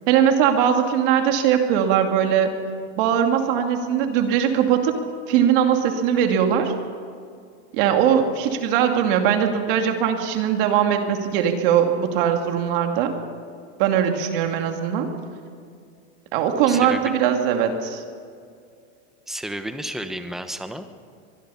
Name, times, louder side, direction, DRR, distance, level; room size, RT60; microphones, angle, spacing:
voice 1, 0.1-2.6 3.0-5.0 5.3-6.7 7.7-13.1 13.8-15.1 16.3-18.0, right 8 dB, 55° right, 4 dB, 2.5 m, -20 dB
voice 2, 16.7-17.1 19.3-20.8, right 1 dB, ahead, 8 dB, 1.0 m, -32 dB
24.0 x 20.5 x 5.7 m, 2.3 s
supercardioid pair, 155°, 33 cm